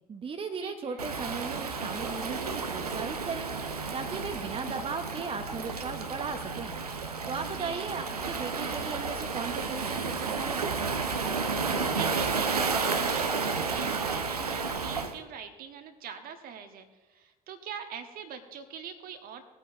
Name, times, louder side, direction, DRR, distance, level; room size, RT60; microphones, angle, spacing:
voice 1, 0.1-3.5 3.9-6.8 7.0-10.8, right 5 dB, 30° right, 5 dB, 1.0 m, -37 dB
voice 2, 0.6-1.0 7.5-7.9 11.9-19.4, right 7 dB, 50° right, 6 dB, 1.3 m, -42 dB
Waves surf, 1.0-15.1, right 4 dB, 85° right, 0.7 m, -32 dB
19.0 x 8.9 x 2.7 m, 1.2 s
figure-of-eight pair, 50°, 19 cm